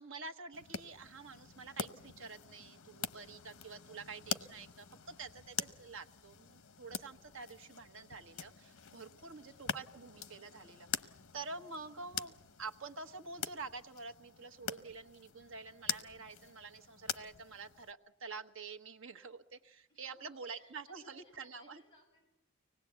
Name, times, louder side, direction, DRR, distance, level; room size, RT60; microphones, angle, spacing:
voice 1, 0.0-12.3 12.6-21.8, right 4 dB, 70° right, 6 dB, 1.3 m, -48 dB
sound 1, 0.5-17.9, left 8 dB, 85° left, 0.9 m, -45 dB
voice 2, 9.5-9.8 19.9-22.3, equal, 25° left, 0 dB, 7.4 m, -66 dB
24.5 x 19.0 x 8.2 m, 0.87 s
head